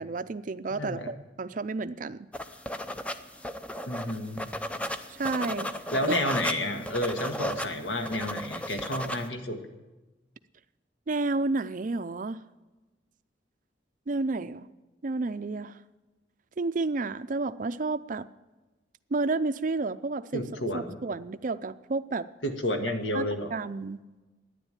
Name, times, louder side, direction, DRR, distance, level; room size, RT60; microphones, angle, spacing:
voice 1, 0.0-2.3 5.1-5.7 6.1-6.2 11.1-12.4 14.1-14.7 15.0-15.8 16.6-18.3 19.1-20.4 20.7-22.3 23.1-23.3 23.5-24.0, right 3 dB, 45° right, 13 dB, 0.5 m, -31 dB
voice 2, 0.7-1.1 3.9-4.5 5.9-9.6 20.3-21.0 22.4-23.5, left 1 dB, 75° left, 5 dB, 1.7 m, -31 dB
sound 1, 2.3-9.3, equal, 5° left, 0.6 m, -35 dB
12.0 x 10.0 x 9.0 m, 1.2 s
head